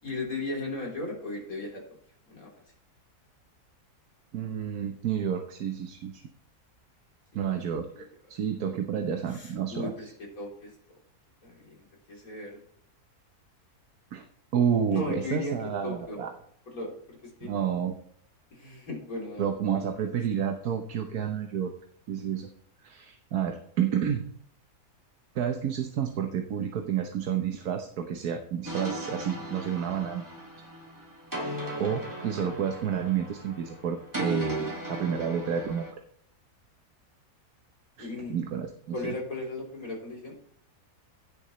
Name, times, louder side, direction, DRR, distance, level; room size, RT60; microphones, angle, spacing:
voice 1, 0.0-1.8 2.3-2.5 7.5-7.6 7.9-8.0 9.3-10.7 11.4-12.6 14.9-16.2 16.7-17.5 18.5-19.5 19.7-19.9 38.0-38.4 38.9-40.4, left 2 dB, 65° left, -2 dB, 3.9 m, -36 dB
voice 2, 4.3-6.2 7.3-9.9 14.1-14.2 14.5-16.3 17.4-17.9 19.4-21.7 22.1-22.5 22.8-24.2 25.3-30.2 31.8-35.9 38.0-39.1, right 8 dB, 75° right, 5 dB, 1.5 m, -30 dB
sound 1, 28.7-35.9, right 1 dB, 10° right, 2.3 m, -37 dB
16.5 x 6.9 x 3.2 m, 0.63 s
omnidirectional pair, 1.6 m